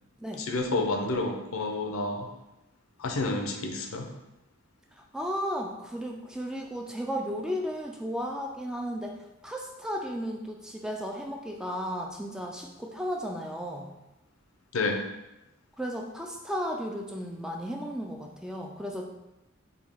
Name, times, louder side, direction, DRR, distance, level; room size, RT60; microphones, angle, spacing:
voice 1, 0.4-2.3 3.0-4.1 14.7-15.0, left 2 dB, 85° left, 4 dB, 0.6 m, -29 dB
voice 2, 5.0-9.2 9.4-13.9 15.8-19.1, equal, 5° right, 0 dB, 0.3 m, -34 dB
5.2 x 2.3 x 3.4 m, 0.94 s
head